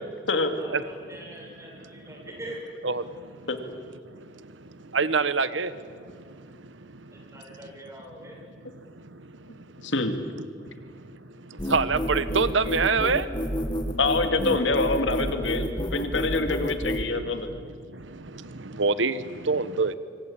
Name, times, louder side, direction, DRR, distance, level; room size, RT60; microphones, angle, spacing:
voice 1, 0.6-2.6 7.1-8.4, right 1 dB, 15° right, -1 dB, 7.1 m, -43 dB
voice 2, 4.9-5.7 11.7-13.2 18.8-19.2 19.5-19.9, right 4 dB, 80° right, 14 dB, 1.1 m, -24 dB
voice 3, 9.8-10.1 14.0-17.5, left 3 dB, 75° left, 7 dB, 2.5 m, -25 dB
sound 1, 11.6-17.1, equal, 25° left, 1.9 m, -29 dB
26.0 x 24.5 x 8.8 m, 2.2 s
head